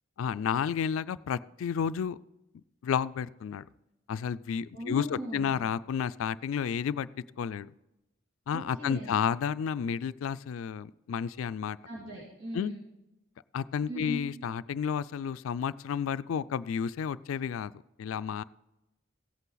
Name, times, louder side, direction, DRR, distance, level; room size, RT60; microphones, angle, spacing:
voice 1, 0.2-2.2 2.8-3.7 4.1-7.1 7.4-7.7 8.5-11.8 12.5-12.7 13.5-17.7 18.0-18.4, left 7 dB, 90° left, 15 dB, 0.3 m, -31 dB
voice 2, 4.7-5.6 8.5-9.1 11.8-12.9 13.9-14.2, equal, 65° right, -6 dB, 2.8 m, -38 dB
16.0 x 8.2 x 3.9 m, 0.96 s
head